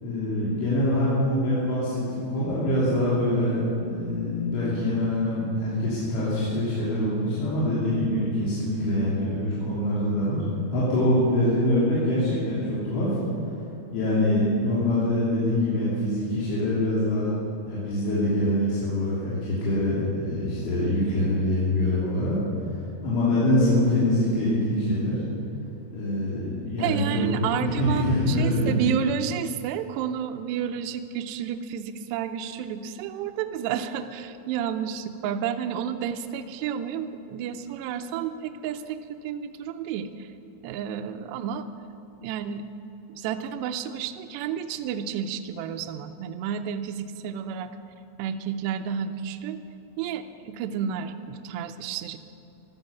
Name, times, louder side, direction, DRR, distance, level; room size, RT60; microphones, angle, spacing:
voice 1, 0.0-10.4 10.7-13.1 13.9-17.3 17.7-22.4 23.0-25.2 25.9-28.8, left 1 dB, 90° left, -9 dB, 5.6 m, -24 dB
voice 2, 26.8-40.3 40.6-41.7 42.2-42.6 43.1-47.7 48.2-49.6 50.0-52.2, right 8 dB, 80° right, 6 dB, 2.6 m, -31 dB
16.0 x 12.5 x 7.0 m, 2.9 s
omnidirectional pair, 5.4 m